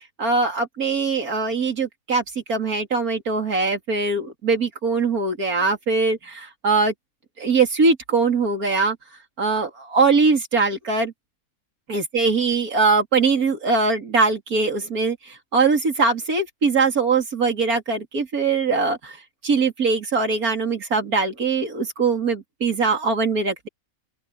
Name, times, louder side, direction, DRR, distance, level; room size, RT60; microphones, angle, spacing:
voice 1, 0.2-2.2 2.5-6.9 7.4-9.0 9.4-11.1 11.9-19.2 19.4-23.7, right 4 dB, 75° right, 3.6 m, -21 dB
open air
omnidirectional pair, 1.5 m